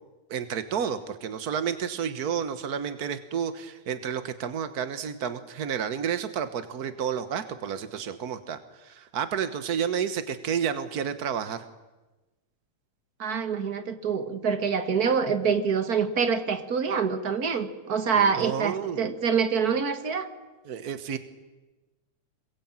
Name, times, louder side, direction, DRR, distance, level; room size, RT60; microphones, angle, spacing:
voice 1, 0.3-11.6 18.1-19.1 20.7-21.2, right 7 dB, 75° right, 11 dB, 0.8 m, -31 dB
voice 2, 13.2-20.3, right 6 dB, 40° right, 9 dB, 1.7 m, -26 dB
27.0 x 22.0 x 8.9 m, 1.1 s
omnidirectional pair, 3.4 m